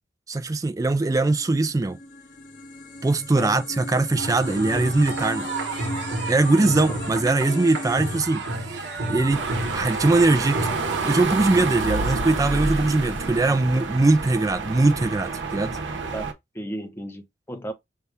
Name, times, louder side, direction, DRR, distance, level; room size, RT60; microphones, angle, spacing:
voice 1, 0.3-2.0 3.0-5.5 6.3-8.5 9.1-10.7 11.1-15.8, right 2 dB, 20° right, 0.3 m, -21 dB
sound 1, 1.4-8.2, left 1 dB, 50° left, 1.2 m, -37 dB
sound 2, 4.1-11.1, right 2 dB, 65° right, 1.1 m, -31 dB
voice 2, 6.5-7.0 16.1-16.2 16.5-17.7, equal, 15° left, 0.8 m, -34 dB
sound 3, 9.3-16.3, right 3 dB, 85° right, 0.9 m, -29 dB
5.6 x 2.3 x 3.3 m
head